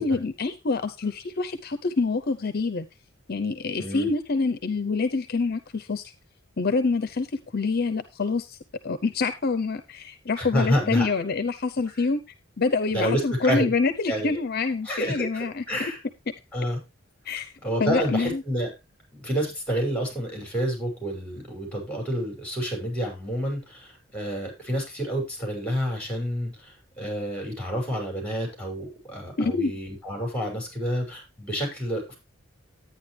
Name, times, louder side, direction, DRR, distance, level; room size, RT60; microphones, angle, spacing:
voice 1, 0.0-2.9 3.3-6.1 6.6-7.3 7.5-8.6 8.8-12.2 12.6-15.6 17.3-17.5 17.8-18.4 29.4-29.7, left 4 dB, 50° left, 10 dB, 0.7 m, -26 dB
voice 2, 10.4-11.1 12.9-13.7 14.1-14.4 14.8-16.0 16.5-16.8 17.6-18.7 19.1-32.1, equal, 5° left, 2 dB, 6.2 m, -29 dB
11.5 x 9.4 x 3.3 m, 0.24 s
head